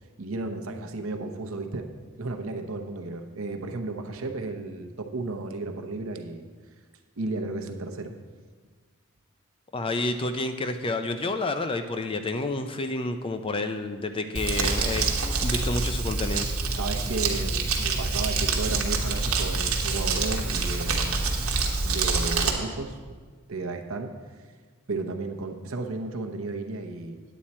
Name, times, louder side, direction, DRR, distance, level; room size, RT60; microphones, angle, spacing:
voice 1, 0.2-1.9 2.2-6.5 7.2-8.1 16.7-21.2 21.8-23.0 23.5-24.1 24.9-27.2, right 3 dB, 70° right, 5 dB, 0.8 m, -33 dB
voice 2, 9.7-15.1 15.4-16.5, left 2 dB, 25° left, 8 dB, 0.4 m, -29 dB
Crumpling crinkling, 14.3-22.5, right 4 dB, 85° right, 1.2 m, -26 dB
9.2 x 8.6 x 4.3 m, 1.5 s
head